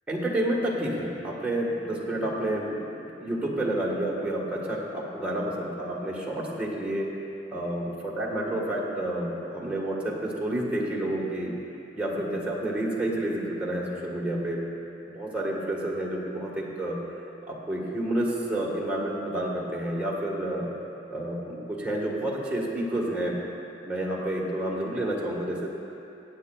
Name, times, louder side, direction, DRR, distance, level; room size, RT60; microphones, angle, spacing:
voice 1, 0.1-7.1 7.5-11.5 11.9-14.6 15.0-17.0 17.5-20.7 21.1-23.4 23.8-25.7, right 1 dB, 10° right, -5 dB, 1.3 m, -29 dB
16.5 x 9.0 x 2.3 m, 2.8 s
head